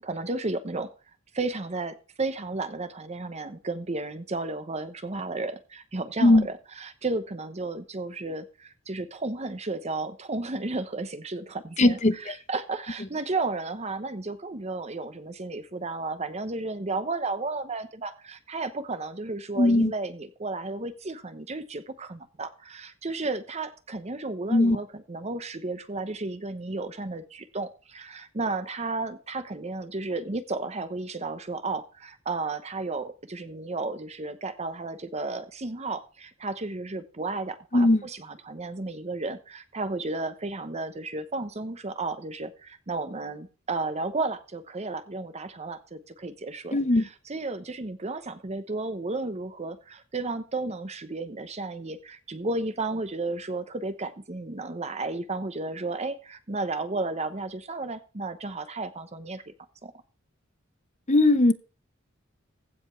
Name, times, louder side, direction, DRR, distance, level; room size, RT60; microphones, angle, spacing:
voice 1, 0.0-0.9 1.3-59.5 59.8-59.9, right 3 dB, 35° right, 0.9 m, -33 dB
voice 2, 11.8-12.1 19.6-19.9 24.5-24.8 37.7-38.0 46.7-47.0 61.1-61.5, left 2 dB, 35° left, 0.8 m, -19 dB
15.5 x 5.2 x 5.8 m
head